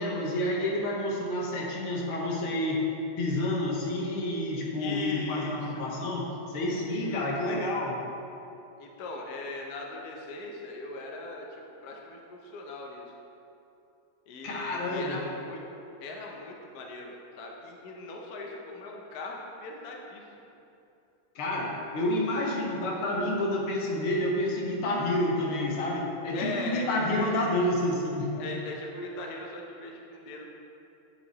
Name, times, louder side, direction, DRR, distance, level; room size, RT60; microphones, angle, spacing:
voice 1, 0.0-2.9 3.2-8.0 14.4-15.2 21.4-28.5, left 1 dB, 80° left, -1 dB, 1.9 m, -29 dB
voice 2, 4.8-5.7 6.9-7.6 8.8-13.1 14.3-15.6 16.0-20.5 26.3-27.3 28.4-30.5, left 2 dB, 60° left, 0 dB, 1.1 m, -40 dB
9.2 x 5.0 x 4.0 m, 2.8 s
omnidirectional pair, 2.3 m